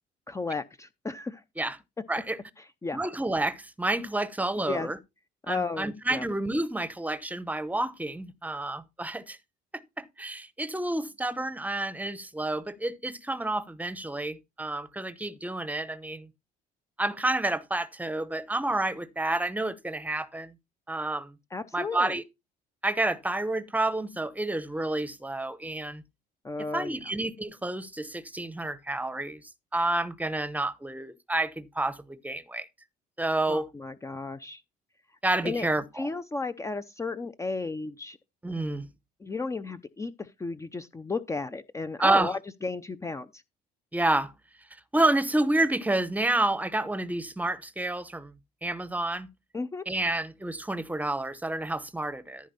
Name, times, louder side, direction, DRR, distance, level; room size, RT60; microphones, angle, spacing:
voice 1, 0.3-1.4 2.6-3.0 4.6-4.9 5.5-6.2 21.5-22.2 26.4-27.0 33.5-34.6 35.4-35.7 36.0-38.2 39.2-43.4 49.5-49.9, left 3 dB, 15° left, 0.6 m, -34 dB
voice 2, 2.1-2.4 2.9-5.0 5.5-9.4 9.7-16.3 17.0-20.5 20.9-21.3 21.7-22.2 22.8-26.0 26.7-29.4 29.7-32.7 33.2-33.7 35.2-36.1 38.4-38.9 42.0-42.3 43.9-44.3 44.9-48.3 48.6-49.3 49.9-52.5, right 2 dB, 10° right, 0.9 m, -29 dB
14.0 x 5.1 x 4.1 m
cardioid pair, 110°, 17 cm